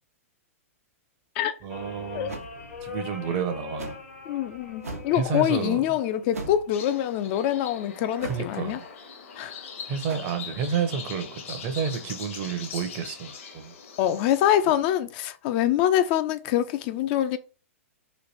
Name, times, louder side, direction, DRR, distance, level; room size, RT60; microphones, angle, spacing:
voice 1, 1.6-2.3 2.8-4.0 5.1-5.8 8.2-8.8 9.9-13.7, right 7 dB, 40° right, 0.7 m, -30 dB
sound 1, 1.7-6.7 7.9-8.4, left 5 dB, 80° left, 1.1 m, -42 dB
sound 2, 2.3-2.5 3.8-4.1 4.8-5.2 6.3-6.7 8.2-8.5 10.1-10.2, right 3 dB, 85° right, 0.8 m, -38 dB
voice 2, 4.3-8.8 9.4-9.6 14.0-17.4, left 11 dB, 40° left, 0.4 m, -25 dB
sound 3, 6.7-14.7, left 6 dB, 60° left, 0.9 m, -41 dB
3.1 x 2.5 x 4.1 m
hypercardioid pair, 115°, 8 cm